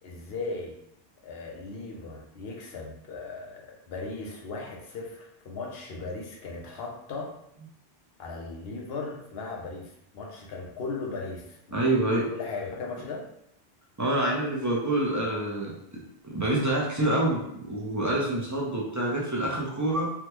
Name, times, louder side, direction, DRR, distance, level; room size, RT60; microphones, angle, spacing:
voice 1, 0.0-0.8 1.2-7.4 8.2-11.8 12.3-13.3, left 3 dB, 70° left, -1 dB, 0.9 m, -37 dB
voice 2, 11.7-12.3 14.0-15.7 16.3-20.1, right 1 dB, 20° right, -4 dB, 0.5 m, -26 dB
3.5 x 2.2 x 3.0 m, 0.77 s
omnidirectional pair, 1.1 m